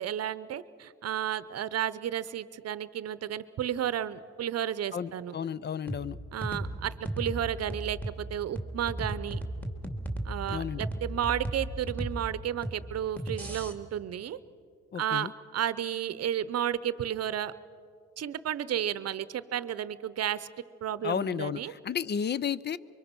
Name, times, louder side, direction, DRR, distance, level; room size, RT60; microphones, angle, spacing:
voice 1, 0.0-5.3 6.3-9.4 10.2-14.4 15.0-17.5 18.2-20.5 20.8-21.7, right 10 dB, 55° right, 16 dB, 0.8 m, -32 dB
voice 2, 4.9-6.2 10.5-10.8 14.9-15.3 21.0-22.8, left 7 dB, 35° left, 19 dB, 0.5 m, -32 dB
sound 1, 5.9-13.7, right 1 dB, 5° left, 2.2 m, -36 dB
24.0 x 23.0 x 6.0 m, 2.4 s
cardioid pair, 90°, 30 cm